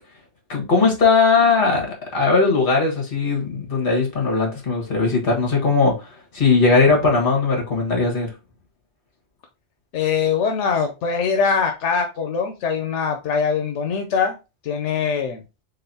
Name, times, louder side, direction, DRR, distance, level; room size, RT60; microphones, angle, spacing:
voice 1, 0.5-1.9 2.1-6.1 6.3-8.3, left 4 dB, 50° left, 1.7 m, -18 dB
voice 2, 9.9-14.4 14.6-15.4, left 6 dB, 85° left, 0.9 m, -22 dB
4.0 x 3.5 x 2.7 m
omnidirectional pair, 1.2 m